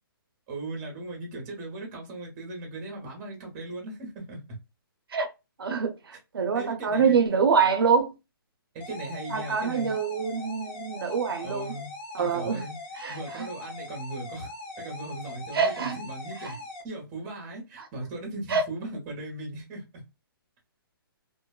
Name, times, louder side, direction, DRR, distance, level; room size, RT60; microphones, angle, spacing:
voice 1, 0.5-4.4 6.5-7.2 8.7-10.0 11.4-12.7 13.1-14.5 14.8-16.6 16.8-20.0, right 2 dB, 20° right, 0.9 m, -38 dB
voice 2, 5.6-8.1 9.3-11.7 12.1-12.6 13.0-13.5 15.5-16.0 16.4-16.5 17.8-17.9 18.5-18.6, right 5 dB, 75° right, 0.6 m, -25 dB
sound 1, 8.8-16.8, left 2 dB, 15° left, 0.5 m, -41 dB
2.5 x 2.2 x 2.2 m
hypercardioid pair, 165°, 12 cm